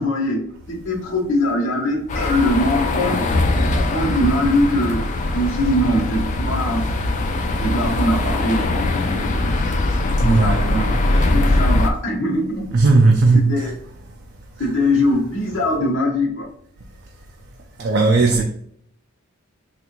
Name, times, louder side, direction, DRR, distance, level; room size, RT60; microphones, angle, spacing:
voice 1, 0.0-3.2 3.9-5.0 5.3-6.8 7.6-9.5 10.1-12.7 13.5-13.7 14.6-16.5, left 1 dB, 60° left, 0.8 m, -22 dB
sound 1, 2.1-11.9, left 2 dB, 35° left, 0.3 m, -21 dB
voice 2, 10.2-10.8 12.7-13.7 14.6-14.7 17.8-18.4, right 3 dB, 50° right, 0.4 m, -16 dB
3.5 x 2.4 x 2.9 m
head